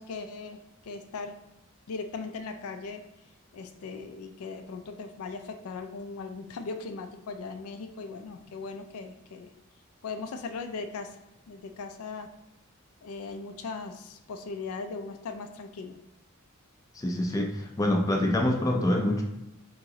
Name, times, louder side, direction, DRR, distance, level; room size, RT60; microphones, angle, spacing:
voice 1, 0.0-1.3 1.9-3.0 3.5-9.5 10.0-11.2 11.5-12.3 13.0-16.0, left 4 dB, 90° left, 7 dB, 0.4 m, -38 dB
voice 2, 16.9-19.2, left 1 dB, 15° left, 2 dB, 0.4 m, -26 dB
2.9 x 2.8 x 3.6 m, 0.91 s
head